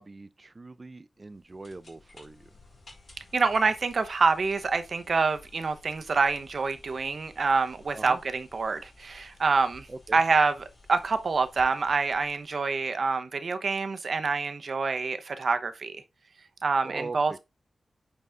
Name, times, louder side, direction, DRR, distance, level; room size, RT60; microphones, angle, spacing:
voice 1, 0.0-2.5 7.9-8.2 9.9-10.2 16.8-17.4, right 3 dB, 35° right, 0.6 m, -41 dB
sound 1, 1.2-13.0, left 3 dB, 50° left, 3.9 m, -54 dB
voice 2, 3.3-16.0 16.6-17.4, right 4 dB, 60° right, 0.9 m, -26 dB
9.3 x 4.1 x 3.5 m
wide cardioid pair, 105°, 0 cm